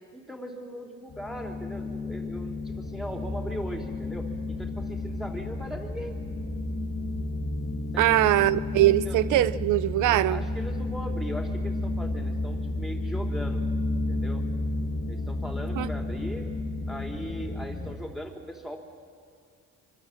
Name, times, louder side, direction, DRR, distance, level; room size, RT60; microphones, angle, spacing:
voice 1, 0.1-6.1 7.9-8.6 9.1-9.2 10.0-13.6 14.1-14.5 15.1-16.5 16.9-18.8, equal, ahead, 2 dB, 4.0 m, -39 dB
sound 1, 1.1-17.9, left 2 dB, 35° left, 1.9 m, -32 dB
voice 2, 8.0-10.4 15.8-15.9, right 15 dB, 80° right, 17 dB, 0.6 m, -22 dB
25.5 x 24.5 x 7.8 m, 2.1 s
cardioid pair, 90°, 30 cm